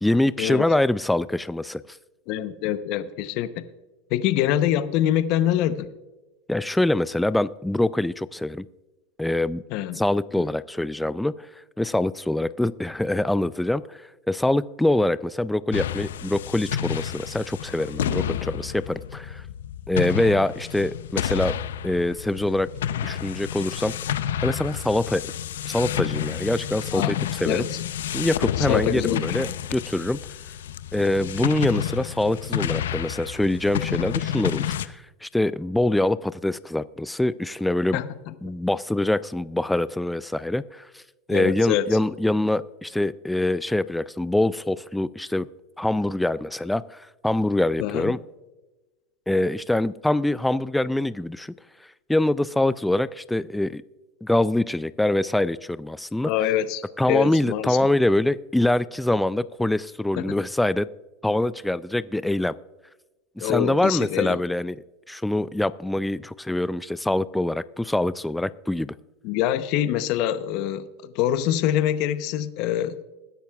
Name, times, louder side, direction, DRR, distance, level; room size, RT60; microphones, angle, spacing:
voice 1, 0.0-2.0 6.5-8.7 9.2-9.6 9.9-11.5 11.8-19.4 19.9-21.6 21.8-22.7 23.0-23.9 24.4-25.2 25.7-27.6 28.1-30.2 30.9-38.0 38.4-41.0 41.3-45.5 45.8-48.2 49.3-51.5 52.1-53.8 54.2-56.3 57.0-60.9 61.2-62.5 63.4-64.8 65.1-68.9, left 1 dB, 5° left, 16 dB, 0.3 m, -24 dB
voice 2, 2.3-3.6 4.1-5.9 9.7-10.0 26.9-27.8 28.6-29.3 37.9-38.5 41.3-41.9 47.8-48.1 56.2-57.9 60.2-60.3 63.4-64.4 69.2-73.0, left 11 dB, 55° left, 12 dB, 0.8 m, -25 dB
sound 1, 15.7-34.9, left 10 dB, 90° left, 0.5 m, -30 dB
21.0 x 10.5 x 2.3 m, 1.1 s
supercardioid pair, 115°, 0 cm